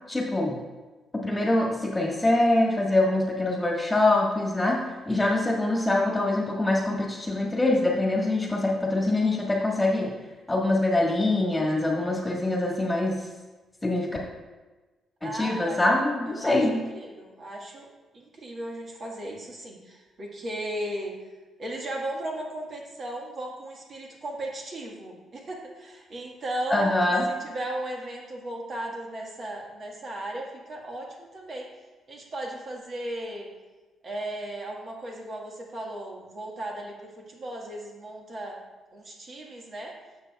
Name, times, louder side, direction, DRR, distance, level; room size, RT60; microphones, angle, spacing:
voice 1, 0.1-0.5 1.2-10.1 10.5-13.2 13.8-14.1 15.2-16.8 26.7-27.2, left 2 dB, 15° left, -1 dB, 1.6 m, -24 dB
voice 2, 15.2-15.8 16.3-17.9 18.1-21.1 21.6-27.0 27.3-31.7 32.1-33.5 34.0-38.6 38.9-39.9, right 1 dB, 50° right, -1 dB, 1.6 m, -36 dB
10.5 x 7.0 x 2.4 m, 1.2 s
cardioid pair, 90°, 0 cm